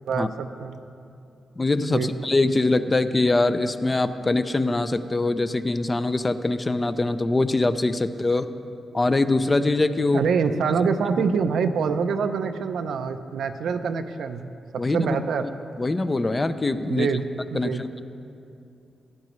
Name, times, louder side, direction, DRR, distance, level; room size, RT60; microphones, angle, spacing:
voice 1, 0.1-0.8 1.9-2.1 10.1-14.5 14.9-15.5 16.9-17.8, right 5 dB, 80° right, 8 dB, 0.5 m, -25 dB
voice 2, 1.6-8.5 8.9-10.3 14.8-15.2 15.4-15.5 15.8-17.1 17.5-18.0, left 2 dB, 25° left, 11 dB, 0.5 m, -23 dB
16.0 x 11.0 x 3.1 m, 2.6 s
cardioid pair, 90°, 0 cm